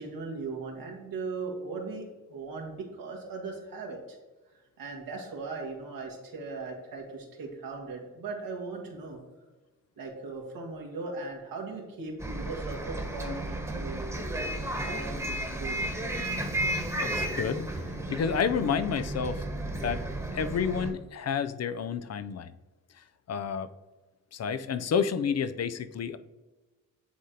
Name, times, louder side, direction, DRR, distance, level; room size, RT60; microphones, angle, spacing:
voice 1, 0.0-4.2 4.8-9.2 10.0-15.8, right 3 dB, 80° right, 0 dB, 1.6 m, -39 dB
Bus, 12.2-20.9, right 1 dB, 10° right, 1.3 m, -33 dB
voice 2, 16.9-17.7 18.1-19.4 19.8-20.0 20.3-22.5 23.3-23.7 24.3-26.2, left 7 dB, 50° left, 12 dB, 0.5 m, -30 dB
9.5 x 3.7 x 2.8 m, 1.2 s
cardioid pair, 60°, 34 cm